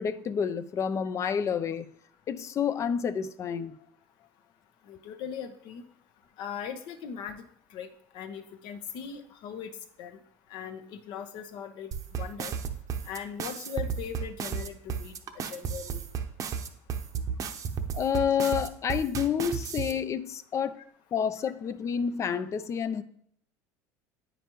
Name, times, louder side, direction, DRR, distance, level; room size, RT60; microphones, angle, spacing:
voice 1, 0.0-1.9 2.3-3.8 17.9-20.8 21.1-23.0, left 7 dB, 35° left, 0.5 m, -29 dB
voice 2, 4.9-5.8 6.4-7.4 7.7-7.9 8.1-10.2 10.5-11.9 12.2-12.5 13.0-15.2 15.5-16.0, left 7 dB, 65° left, 0.9 m, -39 dB
sound 1, 11.9-19.9, right 7 dB, 45° right, 0.7 m, -33 dB
9.0 x 5.1 x 3.0 m
supercardioid pair, 95°, 8 cm